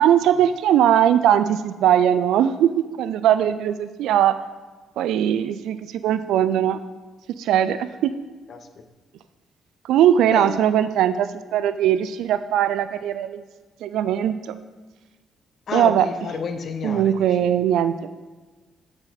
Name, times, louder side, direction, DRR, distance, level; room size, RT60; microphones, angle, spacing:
voice 1, 0.0-4.4 5.0-5.8 6.0-6.8 7.4-8.1 9.8-13.4 13.8-14.5 15.7-16.1 16.8-17.9, right 10 dB, 85° right, 12 dB, 0.3 m, -20 dB
voice 2, 8.5-8.8 10.2-10.7 15.7-17.5, left 5 dB, 55° left, 7 dB, 0.6 m, -31 dB
7.8 x 4.2 x 3.9 m, 1.3 s
cardioid pair, 90°, 0 cm